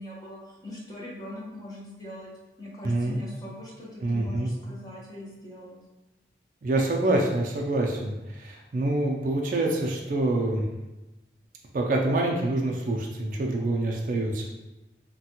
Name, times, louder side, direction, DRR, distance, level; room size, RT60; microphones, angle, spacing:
voice 1, 0.0-2.3 2.6-5.8, left 1 dB, 20° left, -5 dB, 0.7 m, -41 dB
voice 2, 2.8-3.2 4.0-4.5 6.6-10.6 11.7-14.5, right 2 dB, 45° right, 0 dB, 0.3 m, -26 dB
3.3 x 2.2 x 2.8 m, 1.0 s
head